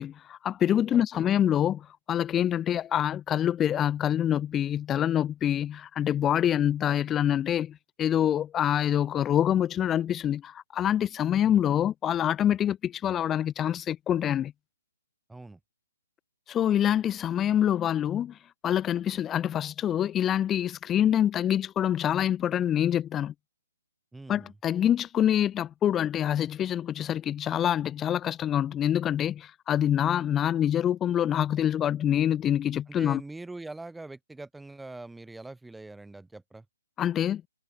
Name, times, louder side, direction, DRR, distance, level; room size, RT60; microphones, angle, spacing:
voice 1, 0.0-14.5 16.5-18.4 18.6-23.3 24.3-33.2 37.0-37.4, left 10 dB, 15° left, 0.9 m, -26 dB
voice 2, 0.9-1.5 15.3-15.6 24.1-24.6 32.9-36.6, right 2 dB, 5° right, 4.6 m, -43 dB
figure-of-eight pair, 130°, 0 cm